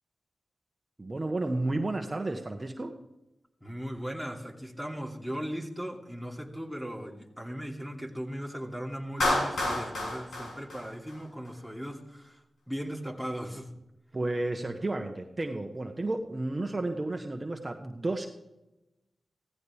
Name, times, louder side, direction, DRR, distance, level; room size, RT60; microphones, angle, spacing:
voice 1, 1.0-2.9 14.1-18.3, right 2 dB, 35° right, 4 dB, 1.4 m, -32 dB
voice 2, 3.6-12.4 12.7-13.7, equal, 5° left, 0 dB, 2.9 m, -38 dB
Clapping, 9.2-11.5, left 1 dB, 85° left, 6.1 m, -30 dB
16.5 x 14.5 x 3.7 m, 0.94 s
cardioid pair, 55°, 0 cm